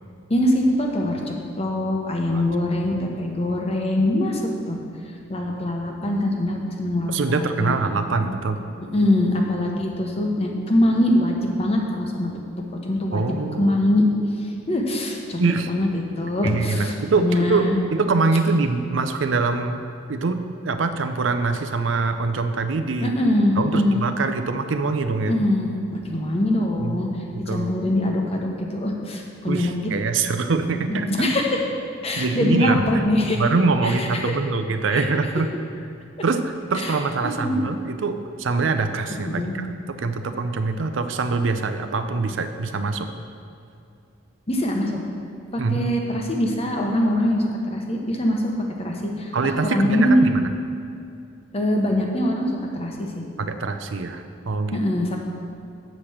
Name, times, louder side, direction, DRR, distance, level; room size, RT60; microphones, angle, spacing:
voice 1, 0.3-4.4 4.7-4.8 5.3-7.8 8.9-12.3 12.6-14.0 14.4-17.8 23.0-24.0 25.3-25.7 26.0-27.1 27.5-29.9 30.7-31.7 32.0-33.4 33.8-34.4 34.9-35.1 36.8-36.9 37.2-37.6 39.2-39.6 44.5-45.0 45.5-48.5 48.8-50.3 51.5-53.2 54.7-55.2, left 1 dB, 30° left, 1 dB, 1.0 m, -23 dB
voice 2, 7.1-8.6 13.1-13.8 15.4-15.7 16.4-17.6 17.9-19.8 20.1-23.1 23.6-25.4 26.8-27.7 29.5-31.1 32.2-32.8 33.3-35.5 36.2-39.7 40.0-43.1 45.6-46.0 49.3-50.5 53.4-54.8, right 4 dB, 70° right, 8 dB, 0.5 m, -24 dB
7.4 x 4.9 x 7.1 m, 2.5 s
head